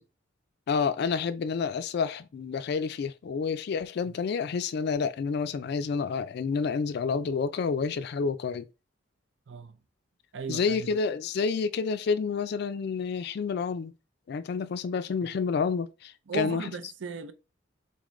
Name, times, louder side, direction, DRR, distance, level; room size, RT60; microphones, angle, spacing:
voice 1, 0.7-8.7 10.5-13.9 14.3-16.7, left 5 dB, 60° left, 0.4 m, -29 dB
voice 2, 9.5-9.8 10.3-10.9 16.3-17.3, right 4 dB, 75° right, 0.6 m, -36 dB
4.2 x 3.7 x 3.1 m
head